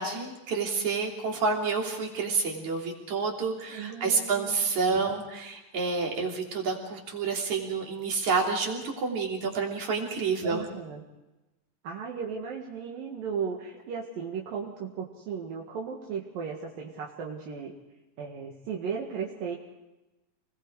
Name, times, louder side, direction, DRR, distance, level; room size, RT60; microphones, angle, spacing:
voice 1, 0.0-10.6, right 4 dB, 55° right, 0 dB, 4.7 m, -29 dB
voice 2, 3.7-4.6 4.9-5.0 10.4-11.0 11.8-17.7 18.2-19.6, right 6 dB, 75° right, -2 dB, 3.7 m, -36 dB
29.0 x 21.0 x 5.0 m, 1.0 s
omnidirectional pair, 4.0 m